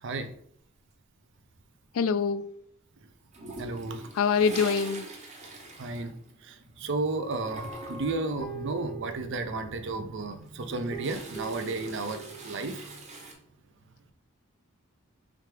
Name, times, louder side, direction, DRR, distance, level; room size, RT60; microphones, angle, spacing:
voice 1, 0.0-0.3 3.6-4.1 5.8-6.1 6.4-13.0, right 3 dB, 60° right, 0.5 m, -33 dB
voice 2, 1.9-2.5 4.1-5.1, left 6 dB, 80° left, 0.3 m, -24 dB
Toilet flush, 3.3-6.8 7.1-8.2 10.3-13.3, right 2 dB, 35° right, 0.8 m, -44 dB
Guitar, 7.5-10.0 10.7-12.6, right 5 dB, 20° left, 0.6 m, -42 dB
4.8 x 3.3 x 3.3 m
head